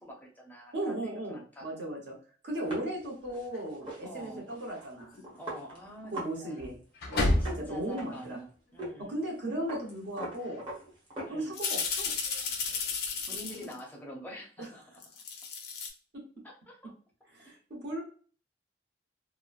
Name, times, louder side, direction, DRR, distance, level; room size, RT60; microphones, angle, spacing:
voice 1, 0.0-1.9 4.0-4.5 5.3-6.1 6.4-6.6 7.4-9.2 11.3-11.6 13.3-14.9 16.4-16.9, equal, 10° left, -1 dB, 0.6 m, -46 dB
voice 2, 0.7-2.2 2.4-5.2 6.1-6.8 7.1-8.4 9.0-10.6 11.3-12.1 14.6-14.7 17.3-18.0, right 1 dB, 65° right, -1 dB, 0.9 m, -36 dB
sound 1, 2.6-6.4 6.6-6.7 7.0-8.4 8.8-9.0 9.2-11.8 12.2-13.6, right 2 dB, 25° right, 0.8 m, -43 dB
sound 2, 3.5-3.6 5.2-5.3 6.6-7.8 9.8-9.9 10.4-10.6 11.5-13.8 14.9-15.9, left 3 dB, 55° left, 0.5 m, -31 dB
2.9 x 2.0 x 2.4 m, 0.42 s
head